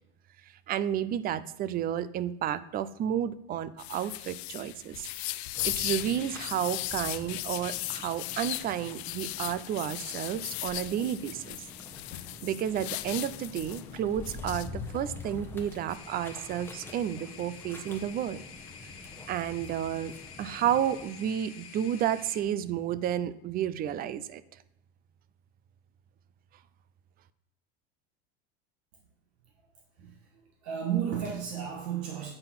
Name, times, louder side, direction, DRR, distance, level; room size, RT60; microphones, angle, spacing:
voice 1, 0.7-5.1 5.6-11.6 12.4-18.4 18.8-19.0 19.3-24.4, right 10 dB, 30° right, 16 dB, 0.4 m, -31 dB
sound 1, 3.8-16.0, left 17 dB, 90° left, 0.5 m, -38 dB
sound 2, 5.5-21.1, left 3 dB, 5° left, 1.0 m, -46 dB
sound 3, 15.9-22.4, left 6 dB, 40° left, 1.4 m, -48 dB
voice 2, 30.0-32.3, right 9 dB, 80° right, 0 dB, 1.5 m, -33 dB
8.9 x 3.7 x 5.9 m, 0.82 s
supercardioid pair, 125°, 31 cm